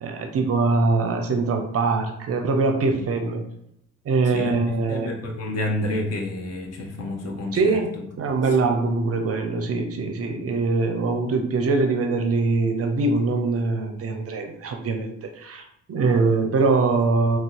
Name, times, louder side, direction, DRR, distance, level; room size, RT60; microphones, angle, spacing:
voice 1, 0.0-3.5 4.1-5.1 7.5-7.9 8.2-17.4, right 3 dB, 45° right, 5 dB, 0.5 m, -23 dB
voice 2, 4.9-8.1, left 1 dB, 45° left, 2 dB, 0.8 m, -29 dB
3.8 x 2.0 x 2.5 m, 0.75 s
hypercardioid pair, 40°, 35 cm